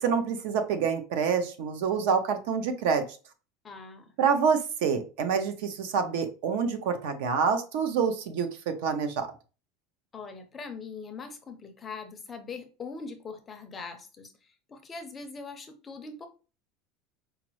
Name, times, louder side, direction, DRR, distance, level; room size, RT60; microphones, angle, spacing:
voice 1, 0.0-3.0 4.2-9.3, right 6 dB, 70° right, 8 dB, 0.7 m, -27 dB
voice 2, 3.6-4.1 10.1-14.3 14.7-16.3, left 4 dB, 15° left, 6 dB, 0.5 m, -41 dB
4.9 x 2.0 x 3.0 m, 0.34 s
supercardioid pair, 165°, 0 cm